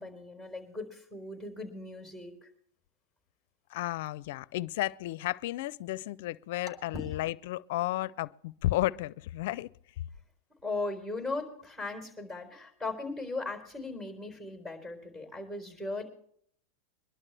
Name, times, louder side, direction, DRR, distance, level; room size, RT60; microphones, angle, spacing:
voice 1, 0.0-2.5 10.6-16.0, left 3 dB, 10° right, 4.2 m, -38 dB
voice 2, 3.7-9.7, left 16 dB, 65° left, 0.4 m, -33 dB
23.0 x 12.0 x 3.3 m
hypercardioid pair, 115°, 0 cm